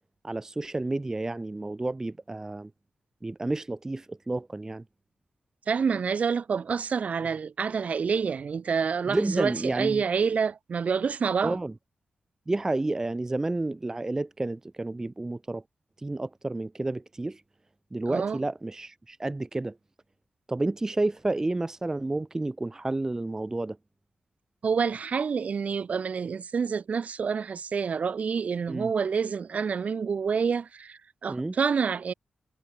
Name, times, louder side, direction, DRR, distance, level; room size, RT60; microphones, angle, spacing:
voice 1, 0.2-2.7 3.2-4.8 9.1-10.0 11.4-11.7 12.5-15.6 16.0-17.4 17.9-19.8 20.5-23.8 28.7-28.9 31.3-31.6, right 2 dB, 20° right, 0.4 m, -30 dB
voice 2, 5.7-11.6 18.1-18.4 24.6-32.1, right 6 dB, 60° right, 0.7 m, -28 dB
cardioid pair, 75°, 3 cm